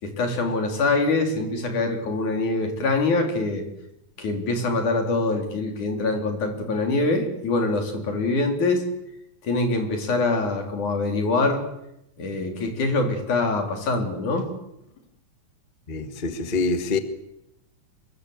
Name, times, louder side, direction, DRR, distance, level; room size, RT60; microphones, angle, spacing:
voice 1, 0.0-3.6 4.2-8.8 9.4-11.7 12.2-14.5, left 3 dB, 80° left, 5.4 m, -24 dB
voice 2, 15.9-17.0, left 3 dB, 25° left, 1.4 m, -25 dB
26.0 x 23.0 x 8.3 m
omnidirectional pair, 3.4 m